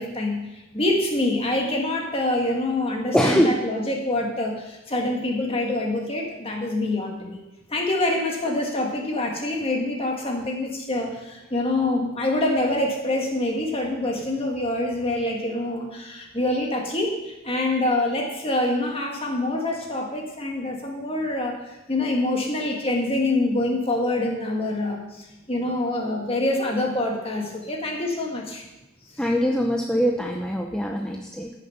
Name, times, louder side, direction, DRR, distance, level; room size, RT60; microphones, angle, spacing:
voice 1, 0.0-7.4 7.7-28.6, left 2 dB, 25° left, 1 dB, 1.8 m, -26 dB
voice 2, 3.1-3.6 29.2-31.5, equal, 5° left, 1 dB, 0.6 m, -22 dB
14.0 x 6.5 x 5.8 m, 1.0 s
head